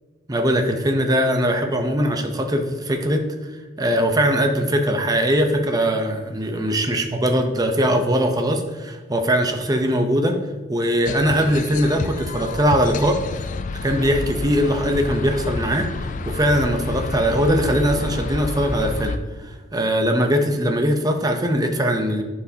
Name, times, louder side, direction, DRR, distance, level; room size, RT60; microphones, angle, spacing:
voice 1, 0.3-3.2 3.8-10.4 10.7-13.2 13.8-19.2 19.7-22.2, equal, 20° right, 4 dB, 0.7 m, -21 dB
sound 1, 11.1-19.2, left 3 dB, 40° left, 0.4 m, -29 dB
11.5 x 4.8 x 2.8 m, 1.3 s
head